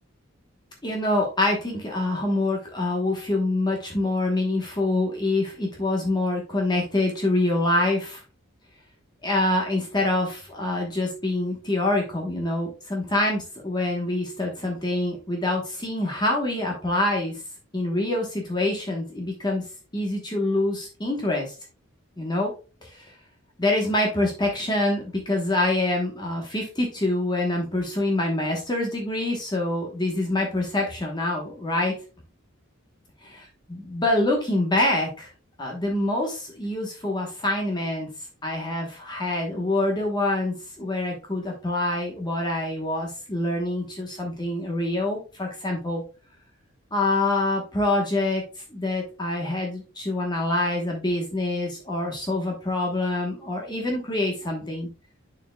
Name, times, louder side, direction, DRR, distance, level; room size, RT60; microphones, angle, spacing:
voice 1, 0.8-8.2 9.2-17.4 17.7-19.6 19.9-21.5 22.2-22.5 22.8-23.1 23.6-31.9 33.7-35.3 35.6-38.1 38.4-46.0 46.9-54.9, left 2 dB, 20° left, 0 dB, 1.1 m, -25 dB
10.0 x 4.5 x 2.3 m, 0.33 s
head